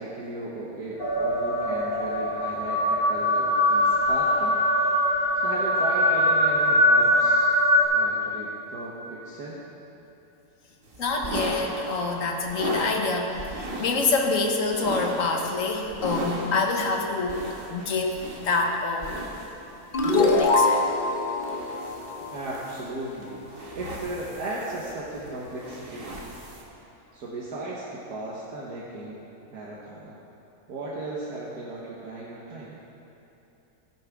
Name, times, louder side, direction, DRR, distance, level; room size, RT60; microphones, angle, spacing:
voice 1, 0.0-4.5 5.3-7.5 7.9-9.6 22.3-23.3 23.8-26.2 27.1-29.2 29.5-30.2 30.7-32.8, right 2 dB, 80° right, -6 dB, 1.8 m, -36 dB
sound 1, 1.0-7.8, left 1 dB, 15° left, 1.8 m, -22 dB
sound 2, 10.8-26.6, right 1 dB, 40° right, 1.5 m, -37 dB
voice 2, 11.0-19.1 20.0-20.9, left 3 dB, 60° left, 2 dB, 1.5 m, -26 dB
sound 3, 19.9-23.2, left 2 dB, 45° left, 0.9 m, -25 dB
16.5 x 9.7 x 3.6 m, 2.9 s
omnidirectional pair, 1.6 m